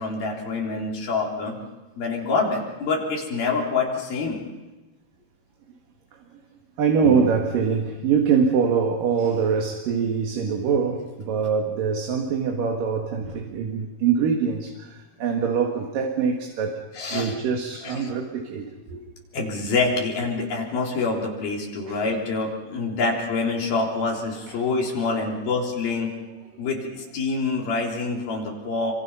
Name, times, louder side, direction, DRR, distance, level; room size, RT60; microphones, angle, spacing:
voice 1, 0.0-1.5 2.0-4.4 17.0-17.3 17.8-18.1 19.3-26.1 26.6-28.9, left 3 dB, 70° left, -2 dB, 5.5 m, -26 dB
voice 2, 6.8-16.8 17.1-19.1 21.9-22.0 24.5-24.6, right 6 dB, 65° right, 2 dB, 3.4 m, -24 dB
28.5 x 25.5 x 5.7 m, 1.1 s
omnidirectional pair, 4.4 m